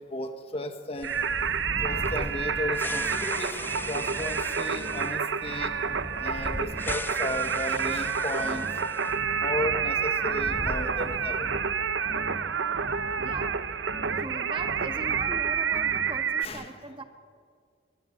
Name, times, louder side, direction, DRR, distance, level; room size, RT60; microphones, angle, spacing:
voice 1, 0.1-1.2 1.8-3.5 3.9-5.8 6.2-8.7 9.3-11.5 16.4-16.8, left 1 dB, 30° left, 7 dB, 1.5 m, -34 dB
sound 1, 1.0-9.2 9.4-9.5 10.2-11.5, left 2 dB, 10° left, 0.5 m, -39 dB
Singing, 1.0-16.4, right 6 dB, 80° right, 0.9 m, -29 dB
sound 2, 1.8-16.4, equal, 65° right, 7.9 m, -43 dB
voice 2, 13.2-13.5 14.2-17.0, right 2 dB, 30° right, 5 dB, 1.8 m, -39 dB
24.0 x 23.0 x 7.3 m, 2.2 s
head